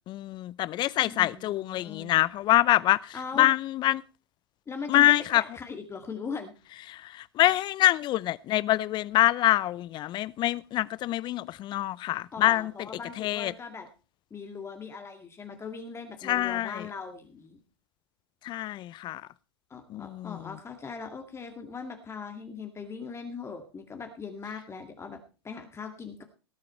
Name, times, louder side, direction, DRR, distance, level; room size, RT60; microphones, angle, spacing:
voice 1, 0.1-4.0 4.9-5.4 6.9-12.7 13.2-13.5 16.2-16.8 18.4-19.2 19.9-20.4, left 15 dB, 35° left, 0.6 m, -25 dB
voice 2, 1.0-2.1 3.1-3.5 4.7-6.5 12.3-13.9 14.3-17.6 19.7-26.2, left 5 dB, 20° left, 2.1 m, -40 dB
18.5 x 8.7 x 4.4 m
hypercardioid pair, 95°, 13 cm